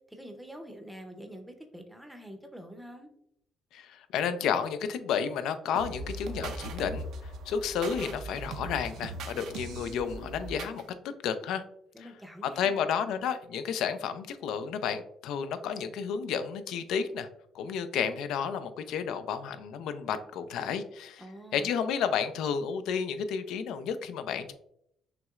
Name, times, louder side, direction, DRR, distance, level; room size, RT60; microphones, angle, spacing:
voice 1, 0.1-3.1 11.9-12.8 21.2-21.8, equal, ahead, 4 dB, 0.6 m, -46 dB
voice 2, 3.7-10.8 11.2-11.6 12.0-12.1 12.4-17.3 17.5-21.2 21.5-24.5, left 7 dB, 80° left, 10 dB, 0.4 m, -31 dB
sound 1, 5.8-10.8, right 2 dB, 70° right, 0.5 m, -40 dB
5.8 x 3.1 x 2.4 m, 0.74 s
cardioid pair, 145°, 0 cm